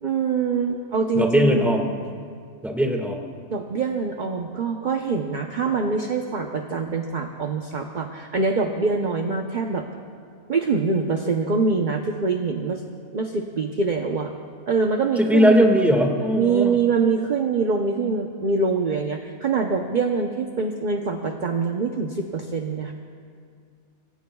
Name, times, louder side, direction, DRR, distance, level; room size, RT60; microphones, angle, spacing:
voice 1, 0.0-1.9 3.5-9.8 10.5-12.8 13.1-14.3 14.7-15.7 16.4-22.9, right 4 dB, 40° right, 3 dB, 0.9 m, -24 dB
voice 2, 1.2-1.8 2.6-3.2 15.2-16.8, equal, ahead, 1 dB, 1.7 m, -19 dB
27.0 x 23.0 x 2.3 m, 2.2 s
omnidirectional pair, 1.4 m